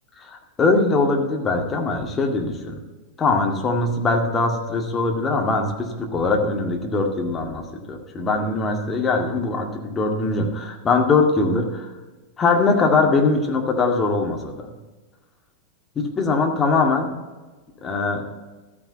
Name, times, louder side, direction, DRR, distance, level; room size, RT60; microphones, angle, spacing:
voice 1, 0.2-2.8 3.2-11.9 12.4-14.7 16.0-17.1 17.8-18.2, left 3 dB, 20° left, 1 dB, 2.1 m, -21 dB
13.5 x 9.6 x 4.4 m, 1.2 s
figure-of-eight pair, 90°, 0 cm